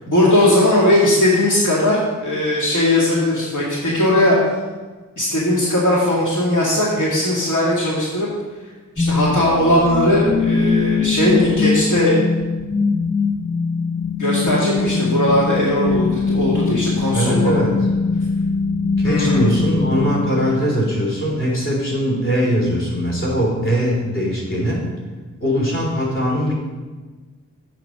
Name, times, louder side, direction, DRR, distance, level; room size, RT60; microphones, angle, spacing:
voice 1, 0.1-4.4 5.2-8.3 9.0-12.2 14.2-17.5 19.0-19.5, left 1 dB, 70° left, -6 dB, 2.2 m, -18 dB
sound 1, 9.0-21.0, left 4 dB, 10° left, 0.4 m, -21 dB
voice 2, 17.1-17.7 19.0-24.8 25.4-26.5, equal, 40° left, -4 dB, 3.3 m, -21 dB
7.9 x 5.8 x 6.4 m, 1.3 s
wide cardioid pair, 125°, 31 cm